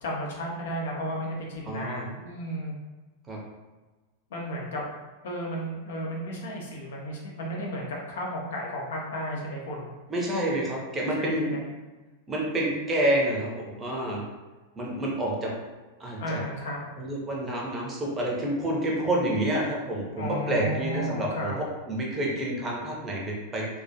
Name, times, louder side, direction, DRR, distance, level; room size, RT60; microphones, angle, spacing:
voice 1, 0.0-2.7 4.3-4.8 5.2-9.9 11.1-11.6 16.2-16.8 20.2-21.6, equal, 60° left, -3 dB, 0.6 m, -33 dB
voice 2, 1.7-2.1 3.3-3.4 10.1-11.6 12.3-14.2 14.8-15.5 16.0-16.4 17.0-23.7, right 1 dB, 20° right, -3 dB, 0.6 m, -28 dB
2.3 x 2.1 x 2.7 m, 1.2 s
figure-of-eight pair, 90°, 0 cm